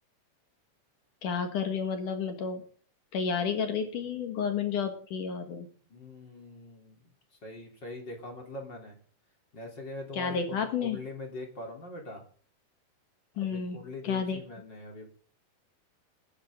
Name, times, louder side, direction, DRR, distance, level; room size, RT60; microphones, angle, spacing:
voice 1, 1.2-2.6 3.1-5.7 10.1-11.0 13.4-14.4, left 6 dB, 65° left, 6 dB, 2.9 m, -31 dB
voice 2, 5.9-7.1 7.4-9.0 9.5-12.2 13.3-15.1, left 2 dB, 30° left, 1 dB, 3.8 m, -42 dB
20.5 x 10.5 x 3.8 m, 0.43 s
omnidirectional pair, 4.3 m